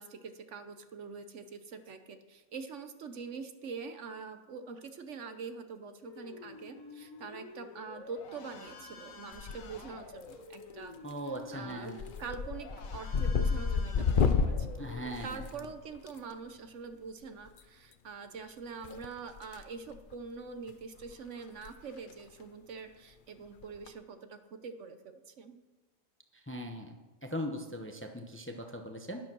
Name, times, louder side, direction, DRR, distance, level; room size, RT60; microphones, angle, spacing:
voice 1, 0.0-11.0 11.2-14.9 15.2-25.6, right 5 dB, 65° right, 9 dB, 1.1 m, -44 dB
sound 1, 6.0-15.2, left 4 dB, 80° left, 1.6 m, -49 dB
sound 2, 9.3-9.9 10.2-10.7 11.1-11.4 11.7-16.1 17.5-17.6 18.8-19.6 19.9-20.1 20.7-20.8 21.0-21.1 21.5-21.7 22.0-22.1 23.6-23.9, left 5 dB, 50° left, 0.7 m, -31 dB
voice 2, 11.0-12.0 14.8-15.4 26.3-27.0 27.2-29.2, equal, 10° left, 4 dB, 0.8 m, -39 dB
10.5 x 10.5 x 6.1 m, 1.2 s
omnidirectional pair, 1.4 m